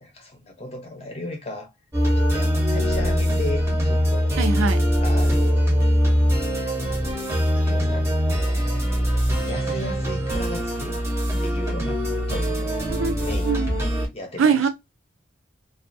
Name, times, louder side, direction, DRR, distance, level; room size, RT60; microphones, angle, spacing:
voice 1, 0.0-1.7 2.2-4.3 5.0-5.7 7.5-11.0 11.4-12.0 12.3-12.8 13.2-13.8 14.1-14.7, left 1 dB, 30° left, 0.7 m, -36 dB
sound 1, 1.9-14.1, equal, 15° right, 0.6 m, -22 dB
voice 2, 4.4-4.8 12.9-13.2 13.5-13.7 14.4-14.7, right 5 dB, 85° right, 0.4 m, -22 dB
2.4 x 2.3 x 2.5 m
head